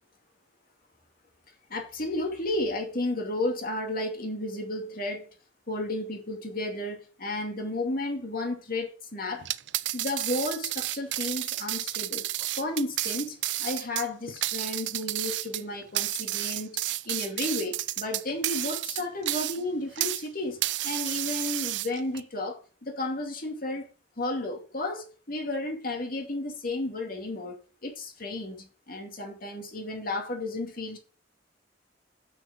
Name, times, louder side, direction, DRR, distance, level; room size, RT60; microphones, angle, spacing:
voice 1, 1.7-5.3 5.7-9.5 9.9-12.2 12.6-23.9 24.2-31.0, left 2 dB, 50° left, 2.3 m, -33 dB
sound 1, 9.4-20.3 20.6-22.2, right 16 dB, 70° right, 0.5 m, -31 dB
7.7 x 6.2 x 7.6 m
head